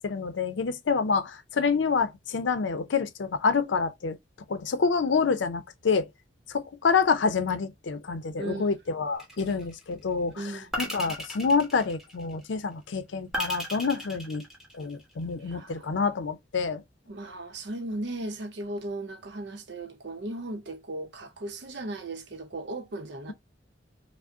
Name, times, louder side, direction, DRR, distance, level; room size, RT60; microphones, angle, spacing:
voice 1, 0.0-4.2 4.5-6.1 6.5-10.4 10.8-14.4 14.7-16.8, left 5 dB, 90° left, 0.5 m, -27 dB
sound 1, 9.2-9.8 10.7-12.4 13.3-15.1, equal, 5° right, 1.3 m, -36 dB
voice 2, 10.4-10.8 15.5-15.9 17.1-23.3, right 2 dB, 70° right, 0.7 m, -36 dB
4.9 x 2.0 x 2.6 m
head